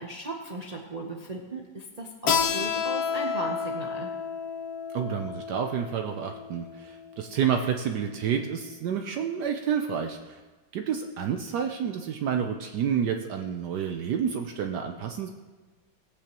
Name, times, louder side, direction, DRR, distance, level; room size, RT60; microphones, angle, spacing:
voice 1, 0.0-4.1, right 2 dB, 55° right, 0 dB, 0.4 m, -37 dB
Keyboard (musical), 2.3-7.5, left 7 dB, 60° left, 1.3 m, -31 dB
voice 2, 4.9-10.4 10.7-15.3, right 8 dB, 70° right, 4 dB, 1.2 m, -29 dB
18.0 x 8.5 x 3.0 m, 1.3 s
omnidirectional pair, 2.0 m